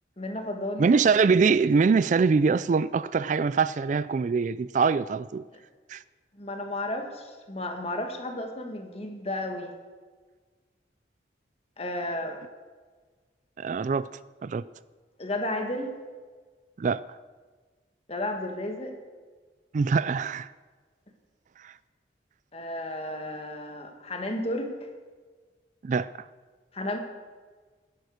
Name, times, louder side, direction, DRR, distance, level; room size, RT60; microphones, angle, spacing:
voice 1, 0.2-1.0 6.4-9.7 11.8-12.4 15.2-15.9 18.1-18.9 22.5-24.7 26.7-27.0, left 1 dB, 35° left, 1.9 m, -33 dB
voice 2, 0.8-5.4 5.9-6.0 13.6-14.1 14.4-14.6 16.8-17.0 19.7-20.5 21.6-21.7 25.8-26.1, right 5 dB, 45° right, 0.3 m, -23 dB
16.5 x 10.5 x 6.5 m
head